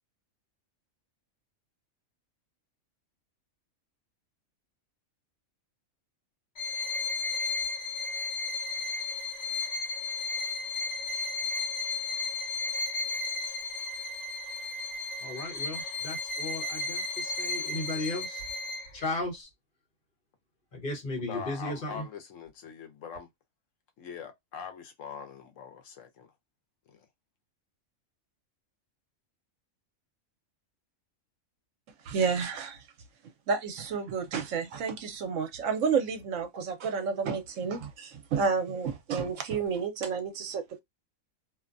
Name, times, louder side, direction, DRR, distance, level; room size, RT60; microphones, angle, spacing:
Bowed string instrument, 6.6-19.1, left 3 dB, 90° left, 0.3 m, -34 dB
voice 1, 15.2-18.4 18.9-19.5 20.7-22.1, left 2 dB, 40° left, 1.1 m, -35 dB
voice 2, 21.3-23.3 24.0-26.3 26.9-27.1, left 6 dB, 70° left, 0.9 m, -42 dB
voice 3, 32.1-32.8 33.5-40.8, right 5 dB, 70° right, 0.9 m, -30 dB
2.6 x 2.1 x 2.5 m
omnidirectional pair, 1.4 m